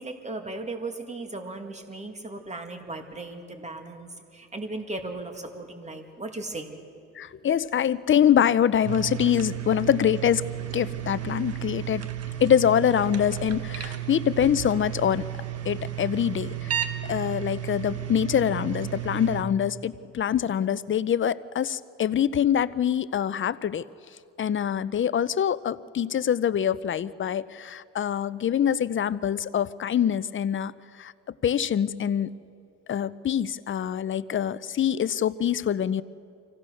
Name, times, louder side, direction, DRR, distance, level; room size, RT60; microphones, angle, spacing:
voice 1, 0.0-6.7, right 2 dB, 25° right, 5 dB, 2.2 m, -37 dB
voice 2, 7.2-10.4 10.7-12.1 12.4-15.3 15.6-23.8 24.4-30.7 31.0-31.1 31.4-32.3 32.9-36.0, left 9 dB, 40° left, 17 dB, 0.6 m, -24 dB
sound 1, 8.8-19.4, right 11 dB, 55° right, 1.3 m, -33 dB
25.5 x 16.5 x 6.3 m, 2.4 s
cardioid pair, 90°, 30 cm